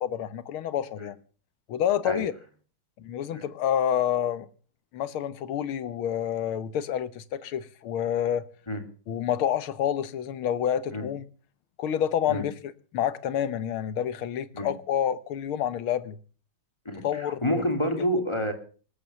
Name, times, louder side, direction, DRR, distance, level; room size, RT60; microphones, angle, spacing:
voice 1, 0.0-1.2 1.7-2.3 3.0-4.5 4.9-8.5 9.1-11.3 11.8-16.2 17.0-17.6, left 9 dB, 85° left, 15 dB, 1.9 m, -28 dB
voice 2, 16.8-18.5, equal, 15° left, 5 dB, 2.9 m, -28 dB
20.0 x 9.6 x 7.0 m, 0.41 s
omnidirectional pair, 2.3 m